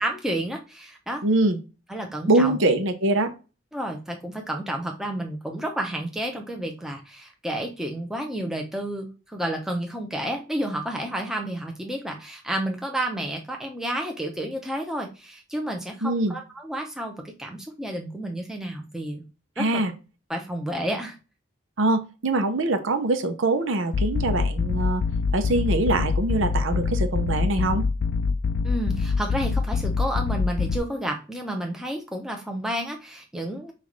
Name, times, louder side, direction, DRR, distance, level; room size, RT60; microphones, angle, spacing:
voice 1, 0.0-1.2 1.9-2.6 3.7-19.2 19.6-19.8 20.3-21.2 28.6-33.7, right 1 dB, ahead, 1 dB, 0.7 m, -31 dB
voice 2, 1.2-1.6 2.3-3.3 16.0-16.3 19.6-19.9 21.8-25.0 25.3-27.9, right 2 dB, 75° right, 7 dB, 0.7 m, -23 dB
sound 1, 23.9-30.8, left 4 dB, 55° left, 0.3 m, -25 dB
5.5 x 2.4 x 3.2 m, 0.31 s
head